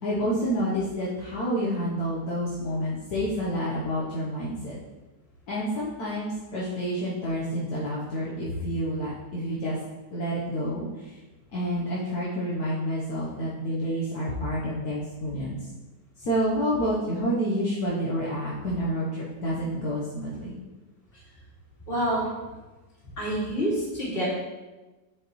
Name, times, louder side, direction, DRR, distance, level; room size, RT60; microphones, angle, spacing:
voice 1, 0.0-4.8 5.5-9.8 10.1-11.2 11.5-15.7 16.2-20.6, equal, 65° left, -7 dB, 1.5 m, -29 dB
voice 2, 21.9-22.3 23.2-24.3, right 1 dB, 30° left, -7 dB, 2.5 m, -28 dB
7.7 x 5.2 x 3.1 m, 1.2 s
omnidirectional pair, 1.9 m